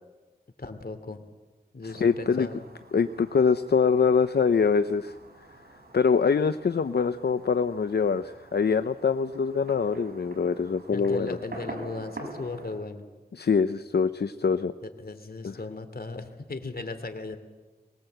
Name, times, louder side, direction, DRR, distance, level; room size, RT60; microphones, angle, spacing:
voice 1, 0.6-1.2 1.7-2.7 10.9-13.0 14.8-17.4, left 3 dB, 65° left, 9 dB, 2.6 m, -37 dB
Fireworks, 1.8-12.8, right 1 dB, 70° right, 5.8 m, -46 dB
voice 2, 2.0-2.5 2.9-5.1 5.9-11.4 13.3-14.7 15.4-15.5, left 5 dB, 85° left, 11 dB, 0.6 m, -24 dB
23.0 x 20.5 x 7.9 m, 1.3 s
cardioid pair, 40°, 17 cm